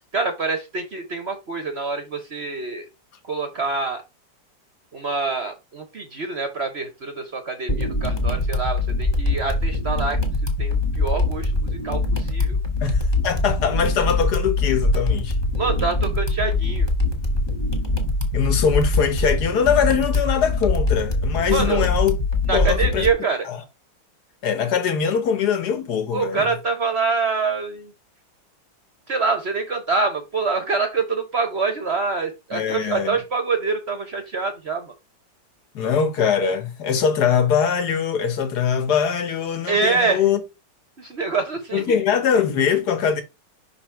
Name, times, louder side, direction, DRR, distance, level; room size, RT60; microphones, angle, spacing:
voice 1, 0.1-2.8 3.3-4.0 4.9-10.2 10.6-12.6 15.6-16.9 21.5-21.9 22.5-23.5 26.1-27.9 29.1-34.9 39.7-40.2 41.0-42.0, right 4 dB, 50° right, 0.8 m, -25 dB
sound 1, 7.7-23.1, left 2 dB, 15° left, 1.3 m, -23 dB
voice 2, 12.8-15.4 18.3-22.2 22.5-23.1 23.5-23.6 24.4-26.5 32.5-33.2 35.7-40.4 41.7-43.2, left 7 dB, 60° left, 1.7 m, -22 dB
5.8 x 4.0 x 4.4 m
omnidirectional pair, 2.0 m